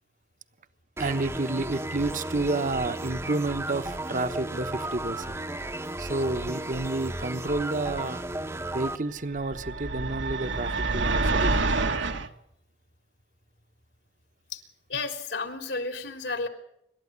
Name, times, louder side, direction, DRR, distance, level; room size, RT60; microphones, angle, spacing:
sound 1, 1.0-9.0, right 1 dB, 15° right, 0.9 m, -34 dB
voice 1, 1.0-5.4 6.0-8.2 8.7-11.9, right 2 dB, 45° right, 10 dB, 1.1 m, -30 dB
sound 2, 9.4-12.3, right 3 dB, 80° right, 1.6 m, -27 dB
voice 2, 14.9-16.5, left 3 dB, 75° left, 5 dB, 3.7 m, -32 dB
26.5 x 13.0 x 9.5 m, 0.78 s
head